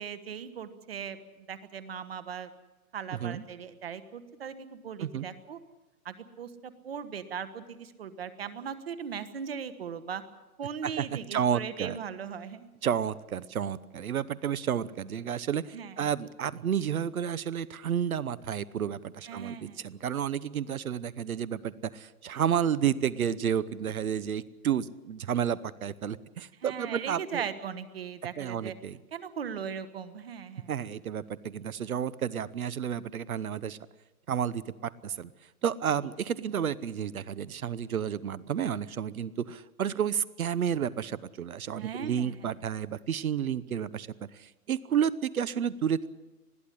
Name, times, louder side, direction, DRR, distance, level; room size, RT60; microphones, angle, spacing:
voice 1, 0.0-2.5 2.9-5.6 6.0-10.2 10.6-12.7 15.7-16.1 19.3-19.9 26.6-28.7 29.1-30.7 41.8-42.6, right 7 dB, 40° right, 12 dB, 1.4 m, -39 dB
voice 2, 10.8-12.0 12.8-27.4 28.4-29.0 30.7-33.8 34.3-35.3 35.6-44.1 44.3-46.1, right 8 dB, 70° right, 18 dB, 1.0 m, -31 dB
21.0 x 14.5 x 9.9 m, 1.1 s
hypercardioid pair, 180°, 45 cm